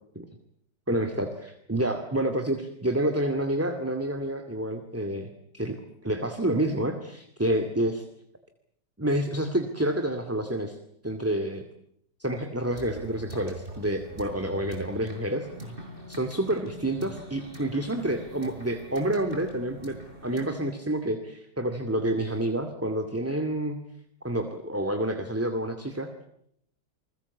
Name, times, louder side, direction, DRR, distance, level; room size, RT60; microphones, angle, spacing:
voice 1, 0.9-5.3 5.5-5.8 6.0-8.0 9.0-10.8 11.0-11.6 12.2-15.7 16.1-20.0 20.2-23.8 24.2-26.1, right 1 dB, 10° right, 6 dB, 2.1 m, -28 dB
sound 1, 12.7-20.5, equal, 30° right, 7.2 m, -43 dB
29.0 x 21.0 x 8.4 m, 0.73 s
omnidirectional pair, 1.9 m